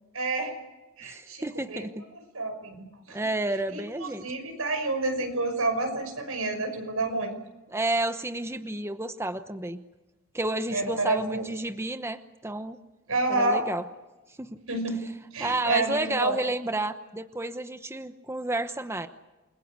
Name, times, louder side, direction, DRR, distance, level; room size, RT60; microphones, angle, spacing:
voice 1, 0.1-0.5 1.0-3.2 3.7-7.4 10.7-11.5 13.1-13.6 14.7-15.0 15.3-16.4, right 2 dB, 80° right, 6 dB, 5.9 m, -29 dB
voice 2, 1.0-2.0 3.1-4.3 7.7-9.8 10.3-12.8 13.3-13.8 14.4-14.6 15.4-19.1, right 2 dB, 10° right, 9 dB, 0.9 m, -31 dB
29.0 x 22.0 x 8.5 m, 1.1 s
head